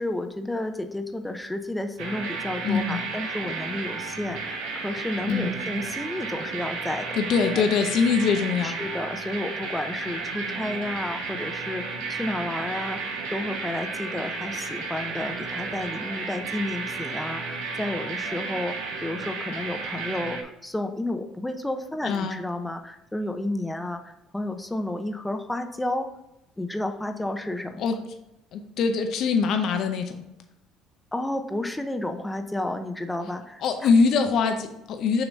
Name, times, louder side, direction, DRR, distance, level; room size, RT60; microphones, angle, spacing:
voice 1, 0.0-7.1 7.5-7.7 8.6-18.7 19.0-26.1 26.6-27.8 31.1-33.9, left 1 dB, 10° left, 6 dB, 0.7 m, -31 dB
sound 1, 2.0-20.4, right 4 dB, 70° right, 0.9 m, -33 dB
voice 2, 2.6-3.0 5.3-5.5 7.2-8.7 22.0-22.4 27.8-28.0 28.5-30.2 33.6-35.2, left 5 dB, 60° left, 5 dB, 0.6 m, -23 dB
6.3 x 3.0 x 5.2 m, 0.84 s
hypercardioid pair, 65°, 0 cm